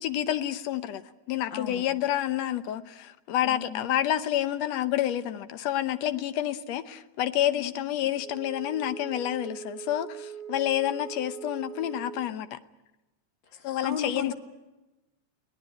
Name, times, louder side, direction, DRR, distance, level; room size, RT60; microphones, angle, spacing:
voice 1, 0.0-12.6 13.6-14.3, left 12 dB, 70° left, 2.0 m, -29 dB
voice 2, 1.5-1.9 3.4-3.9 7.5-7.7 8.0-8.1 13.5-14.3, left 6 dB, 40° left, 2.7 m, -35 dB
Wind instrument woodwind instrument, 8.2-12.3, right 8 dB, 30° right, 6.5 m, -41 dB
22.0 x 18.0 x 9.8 m
omnidirectional pair, 3.3 m